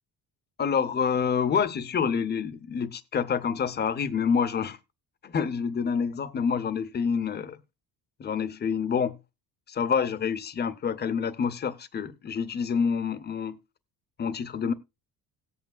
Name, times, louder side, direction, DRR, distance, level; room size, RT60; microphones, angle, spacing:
voice 1, 0.6-4.8 5.2-7.6 8.2-9.2 9.7-13.6 14.2-14.7, left 6 dB, 25° left, 0.7 m, -27 dB
18.0 x 8.3 x 2.3 m
cardioid pair, 150°, 40 cm